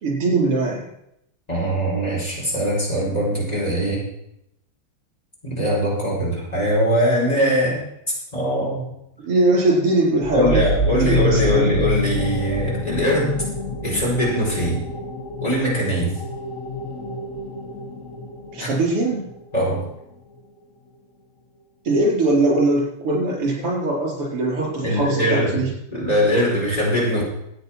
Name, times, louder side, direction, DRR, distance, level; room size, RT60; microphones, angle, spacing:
voice 1, 0.0-0.8 9.2-11.7 18.5-19.3 21.8-25.7, right 2 dB, 90° right, -2 dB, 5.1 m, -21 dB
voice 2, 1.5-4.0 5.4-8.9 10.3-13.4 13.8-14.8 15.4-16.2 18.6-18.7 19.5-19.8 24.8-27.2, equal, 15° left, -5 dB, 4.9 m, -22 dB
sound 1, 10.2-19.6, left 1 dB, 40° left, 1.7 m, -27 dB
13.0 x 8.9 x 6.0 m, 0.80 s
omnidirectional pair, 2.4 m